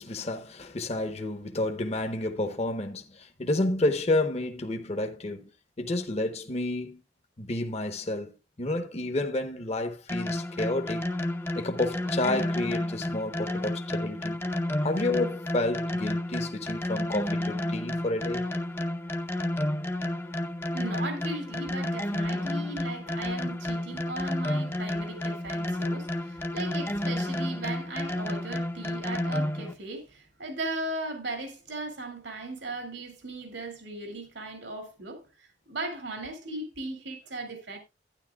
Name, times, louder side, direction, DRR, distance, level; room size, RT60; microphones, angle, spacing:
voice 1, 0.0-5.5 5.8-7.0 7.4-8.3 8.6-11.1 11.6-14.4 14.8-18.5 23.9-24.0, left 2 dB, 35° left, 0.9 m, -30 dB
sound 1, 10.1-29.7, left 1 dB, 15° left, 0.6 m, -31 dB
voice 2, 20.7-37.8, right 2 dB, 80° right, 2.3 m, -37 dB
12.0 x 9.9 x 2.3 m
head